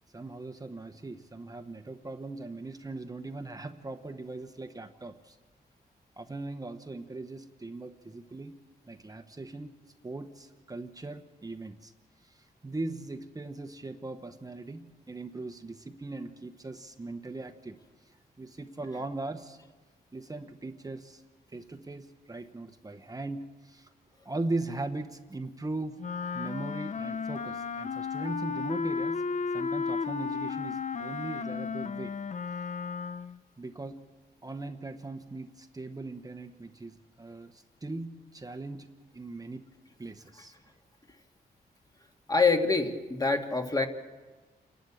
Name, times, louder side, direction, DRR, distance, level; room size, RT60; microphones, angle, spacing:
voice 1, 0.1-5.4 6.2-8.6 8.9-9.7 10.0-11.9 12.2-17.8 18.4-19.6 20.1-21.2 21.5-23.9 24.2-26.0 26.3-29.3 29.5-32.1 33.6-34.0 34.4-38.9 39.1-39.7 40.0-40.5, right 2 dB, 20° right, 6 dB, 1.1 m, -39 dB
Wind instrument woodwind instrument, 26.0-33.4, left 5 dB, 45° left, 0.6 m, -34 dB
voice 2, 42.3-43.9, left 4 dB, 20° left, 4 dB, 1.9 m, -25 dB
28.5 x 12.0 x 8.7 m, 1.3 s
cardioid pair, 105°, 17 cm